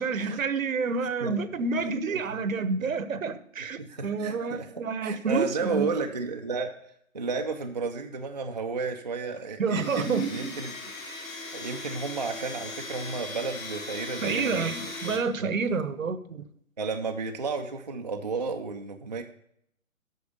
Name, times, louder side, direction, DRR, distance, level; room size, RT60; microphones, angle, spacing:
voice 1, 0.0-5.9 9.6-10.6 14.2-16.5, right 4 dB, 75° right, 13 dB, 0.9 m, -29 dB
voice 2, 1.0-1.4 2.1-2.4 2.8-2.9 3.8-6.7 7.1-10.9 11.5-15.0 15.4-15.6 16.8-19.2, right 4 dB, 35° right, 4 dB, 0.4 m, -33 dB
Domestic sounds home sounds, 9.7-15.2, left 3 dB, 80° left, 2.3 m, -39 dB
8.6 x 6.1 x 5.2 m, 0.70 s
hypercardioid pair, 155°, 41 cm